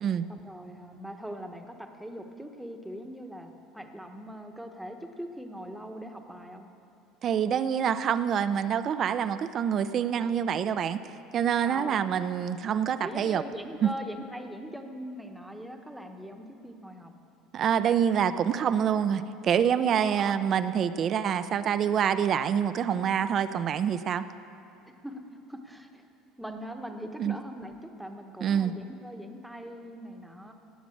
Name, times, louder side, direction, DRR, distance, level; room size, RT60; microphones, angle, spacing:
voice 1, 0.3-6.7 11.6-12.1 13.0-17.1 20.1-20.4 24.8-26.0 26.4-30.5, equal, ahead, 4 dB, 1.0 m, -41 dB
voice 2, 7.2-11.0 11.3-13.4 13.8-13.9 17.5-24.3 27.2-27.3 28.4-28.7, right 8 dB, 35° right, 12 dB, 0.5 m, -26 dB
17.5 x 7.4 x 8.5 m, 2.6 s
cardioid pair, 145°, 0 cm